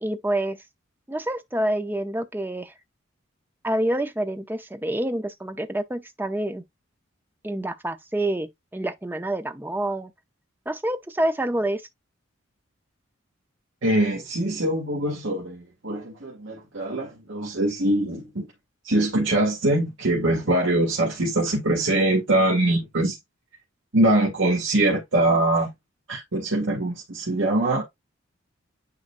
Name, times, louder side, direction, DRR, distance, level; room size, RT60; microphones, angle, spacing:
voice 1, 0.0-0.6 1.1-2.7 3.6-6.6 7.4-10.1 10.7-11.8, right 1 dB, 10° right, 0.6 m, -27 dB
voice 2, 13.8-18.5 18.8-23.2 23.9-25.7 26.1-27.9, right 1 dB, 70° right, 2.2 m, -23 dB
9.8 x 4.0 x 2.5 m
head